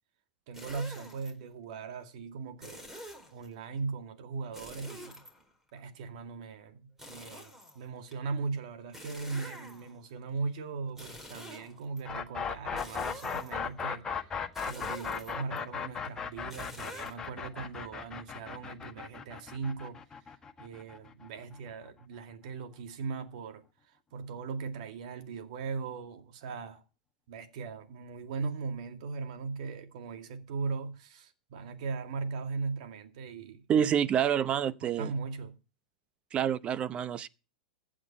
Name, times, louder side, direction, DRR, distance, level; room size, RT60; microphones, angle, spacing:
sound 1, 0.5-1.3 2.6-3.5 4.5-5.8 7.0-8.1 8.9-10.1 10.9-12.0 12.8-13.7 14.6-15.6 16.5-17.1, equal, 10° right, 4.5 m, -47 dB
voice 1, 0.5-2.9 3.3-5.2 5.7-14.3 14.6-20.0 20.6-23.6 24.1-26.8 27.3-33.8 34.8-35.6, right 4 dB, 60° right, 2.3 m, -39 dB
sound 2, 12.0-21.9, left 6 dB, 15° left, 1.5 m, -37 dB
voice 2, 33.7-35.1 36.3-37.3, right 9 dB, 25° right, 0.7 m, -27 dB
15.5 x 8.9 x 4.3 m
hypercardioid pair, 120°, 4 cm